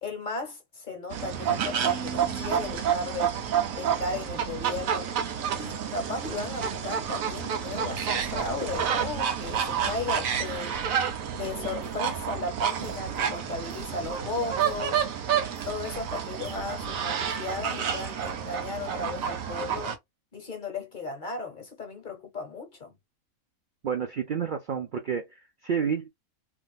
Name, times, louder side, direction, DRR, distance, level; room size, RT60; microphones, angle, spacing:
voice 1, 0.0-3.4 3.7-5.1 5.6-10.8 11.3-15.0 15.6-19.9 20.3-22.9, left 3 dB, 45° left, 0.7 m, -35 dB
sound 1, 1.1-19.9, right 8 dB, 70° right, 1.1 m, -29 dB
sound 2, 11.7-17.1, right 2 dB, 50° right, 0.8 m, -49 dB
voice 2, 23.8-26.1, right 7 dB, 90° right, 0.4 m, -30 dB
3.4 x 2.5 x 2.2 m
omnidirectional pair, 1.5 m